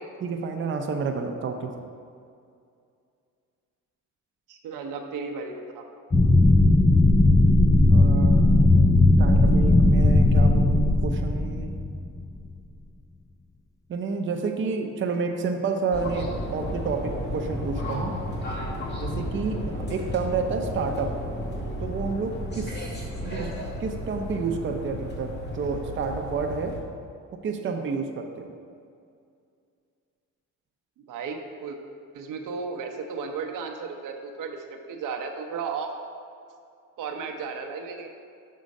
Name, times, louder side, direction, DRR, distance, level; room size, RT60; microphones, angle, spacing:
voice 1, 0.2-1.7 7.9-8.5 9.2-11.7 13.9-18.1 19.0-21.2 21.8-22.8 23.2-23.5 23.8-26.8 27.4-28.5, right 4 dB, 40° right, 4 dB, 0.6 m, -30 dB
voice 2, 4.5-5.8 23.3-23.5 31.0-31.8 32.1-35.9 37.0-38.1, right 5 dB, 80° right, 3 dB, 0.7 m, -34 dB
sound 1, 6.1-12.3, left 2 dB, 10° left, 0.3 m, -18 dB
sound 2, 15.9-26.8, equal, 35° left, 1.6 m, -33 dB
6.3 x 3.8 x 5.3 m, 2.4 s
cardioid pair, 90°, 31 cm